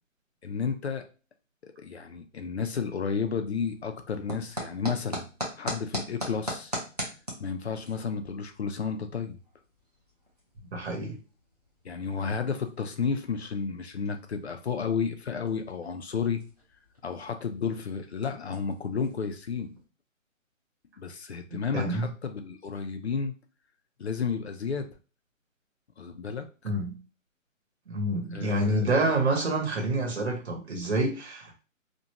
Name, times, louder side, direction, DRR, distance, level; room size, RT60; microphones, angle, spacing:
voice 1, 0.4-1.1 1.6-5.2 5.6-6.7 7.4-9.4 11.8-16.4 17.0-19.7 21.0-23.3 24.0-24.9 26.0-26.7 28.3-28.9, left 6 dB, 55° left, 7 dB, 0.5 m, -32 dB
sound 1, 3.6-19.8, equal, 30° right, 0.4 m, -42 dB
voice 2, 10.7-11.2 21.7-22.1 26.6-27.0 27.9-31.6, right 2 dB, 55° right, 0 dB, 1.0 m, -27 dB
2.6 x 2.1 x 2.8 m, 0.34 s
hypercardioid pair, 175°, 40 cm